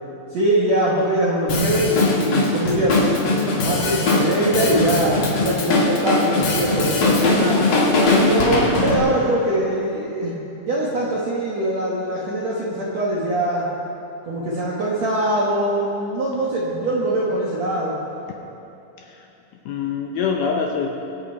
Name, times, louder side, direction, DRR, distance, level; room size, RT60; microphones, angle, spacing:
voice 1, 0.3-7.6 8.2-13.6 14.2-18.0, right 1 dB, 70° right, -5 dB, 1.6 m, -22 dB
Drum kit, 1.5-9.0, left 2 dB, 55° left, 2.9 m, -20 dB
voice 2, 19.7-21.0, left 5 dB, 75° left, 2 dB, 2.3 m, -25 dB
23.5 x 8.0 x 4.5 m, 2.9 s
omnidirectional pair, 5.1 m